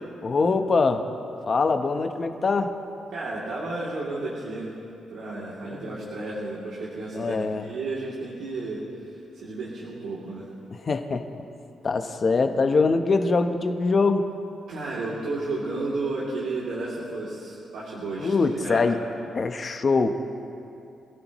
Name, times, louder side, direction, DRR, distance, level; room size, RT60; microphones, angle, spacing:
voice 1, 0.2-1.0 1.5-2.7 5.7-5.9 7.1-7.7 10.9-11.3 11.8-14.3 18.2-19.0 19.3-20.2, left 4 dB, 35° left, 7 dB, 0.9 m, -23 dB
voice 2, 3.1-4.7 5.1-10.5 14.7-18.9, right 2 dB, 80° right, -8 dB, 2.9 m, -32 dB
27.0 x 16.5 x 3.1 m, 2.7 s
cardioid pair, 145°, 0 cm